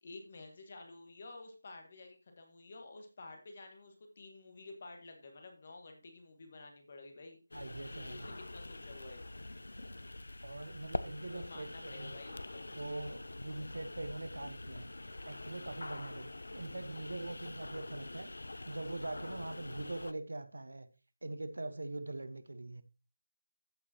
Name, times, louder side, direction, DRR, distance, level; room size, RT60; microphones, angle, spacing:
voice 1, 0.0-7.4 7.8-9.2 11.3-12.8, left 2 dB, 25° left, 1.5 m, -51 dB
sound 1, 7.5-20.1, left 2 dB, 80° left, 0.7 m, -45 dB
voice 2, 7.5-8.3 10.4-12.1 12.7-14.9 15.3-18.3 18.7-20.9 21.2-22.8, right 2 dB, 75° right, 1.1 m, -43 dB
14.5 x 5.1 x 2.9 m
figure-of-eight pair, 180°, 0 cm